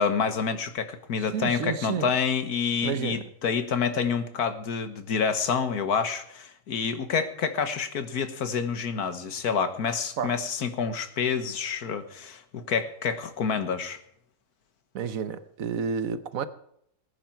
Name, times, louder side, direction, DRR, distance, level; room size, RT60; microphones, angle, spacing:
voice 1, 0.0-14.0, left 6 dB, 90° left, 1.8 m, -28 dB
voice 2, 1.3-2.1 2.8-3.2 10.2-10.4 14.9-16.5, right 6 dB, 65° right, 1.3 m, -30 dB
18.5 x 9.9 x 4.5 m
omnidirectional pair, 1.6 m